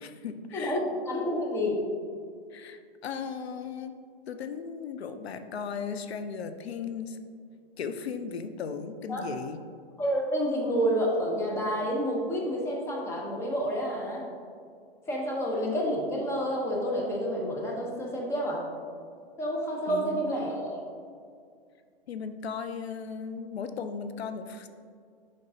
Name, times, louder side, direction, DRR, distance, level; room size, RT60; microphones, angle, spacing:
voice 1, 0.0-0.8 2.5-3.9 4.3-7.2 7.8-9.6 19.9-20.2 22.1-24.7, left 6 dB, 85° left, 9 dB, 0.5 m, -36 dB
voice 2, 0.5-1.8 9.1-9.2 10.0-14.2 15.1-18.6 19.4-20.8, equal, 10° left, -2 dB, 0.8 m, -29 dB
6.7 x 5.2 x 2.7 m, 2.2 s
hypercardioid pair, 135°, 31 cm